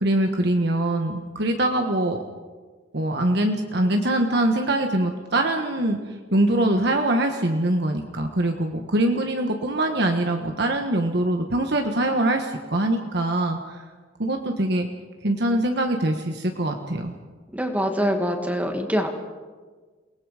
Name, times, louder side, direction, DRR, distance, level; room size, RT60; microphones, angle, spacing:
voice 1, 0.0-2.2 2.9-6.0 6.3-13.8 14.2-14.9 15.2-17.1, right 1 dB, 65° right, 4 dB, 1.4 m, -23 dB
voice 2, 17.5-19.1, equal, 10° right, 4 dB, 2.1 m, -24 dB
29.0 x 19.0 x 5.0 m, 1.4 s
head